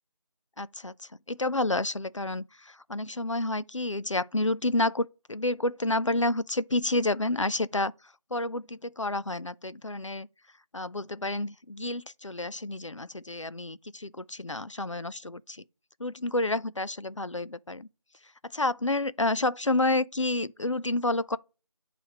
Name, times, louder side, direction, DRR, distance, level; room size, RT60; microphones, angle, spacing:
voice 1, 0.6-7.9 8.3-10.3 10.7-15.6 16.0-17.9 18.4-21.4, left 2 dB, 60° left, 0.4 m, -29 dB
8.1 x 3.2 x 4.7 m
figure-of-eight pair, 175°, 18 cm